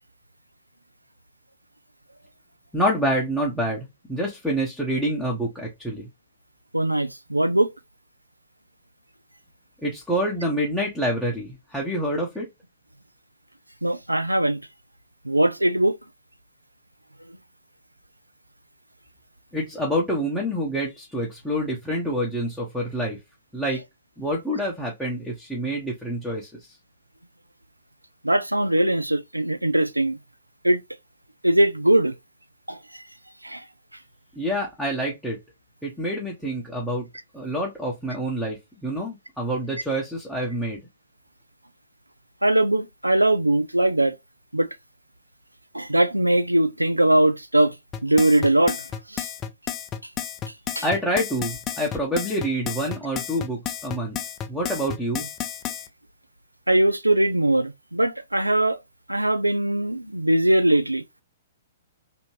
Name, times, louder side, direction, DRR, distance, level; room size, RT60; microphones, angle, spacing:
voice 1, 2.7-6.1 9.8-12.5 19.5-23.2 23.5-23.8 24.2-26.5 34.4-35.4 35.8-37.1 37.3-40.8 50.8-54.2 54.5-55.3, equal, ahead, 0.7 m, -27 dB
voice 2, 6.7-7.7 13.8-14.6 15.3-16.0 28.2-30.2 30.6-30.8 31.4-32.1 32.7-32.8 33.4-33.6 42.4-44.2 44.5-44.7 45.7-47.7 48.0-48.8 49.1-49.2 50.8-50.9 56.7-58.8 59.1-61.0, right 1 dB, 90° right, 0.3 m, -20 dB
sound 1, 47.9-55.9, left 9 dB, 25° left, 0.4 m, -32 dB
2.7 x 2.6 x 2.9 m
figure-of-eight pair, 115°, 0 cm